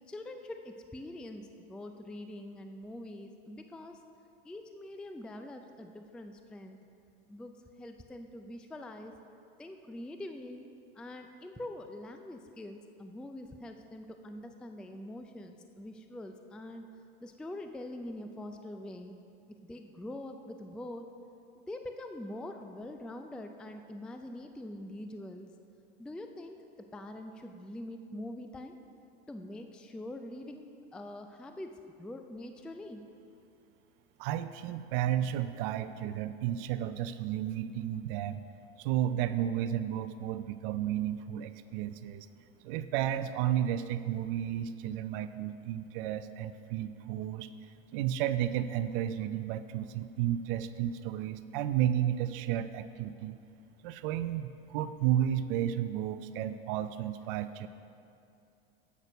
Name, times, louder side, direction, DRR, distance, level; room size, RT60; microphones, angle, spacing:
voice 1, 0.1-4.0 4.4-6.8 7.3-9.1 9.6-10.7 10.9-16.9 17.2-19.2 19.5-21.1 21.6-25.5 26.0-28.7 29.3-30.6 30.9-33.0, left 1 dB, 5° left, 6 dB, 0.3 m, -44 dB
voice 2, 34.2-38.4 38.8-42.3 42.6-47.5 47.9-53.4 53.8-57.7, right 11 dB, 60° right, 12 dB, 0.5 m, -32 dB
8.2 x 6.6 x 5.8 m, 2.6 s
hypercardioid pair, 95°, 31 cm